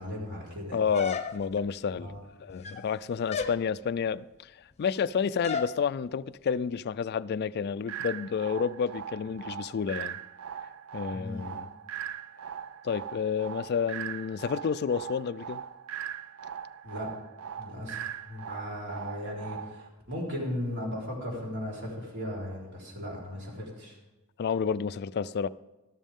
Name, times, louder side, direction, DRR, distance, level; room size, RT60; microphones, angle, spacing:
voice 1, 0.0-0.8 2.0-2.2 11.1-11.5 16.8-17.1 17.6-24.0, left 1 dB, 60° right, 4.0 m, -37 dB
voice 2, 0.7-2.1 2.4-4.5 4.8-10.2 10.9-11.7 12.8-15.6 24.4-25.5, left 6 dB, 50° left, 0.3 m, -30 dB
sound 1, 0.9-1.7 2.5-2.9 3.3-3.6 5.4-5.8, left 5 dB, 30° left, 0.8 m, -34 dB
sound 2, 7.9-19.9, right 8 dB, 80° right, 0.4 m, -40 dB
13.0 x 12.5 x 3.6 m
head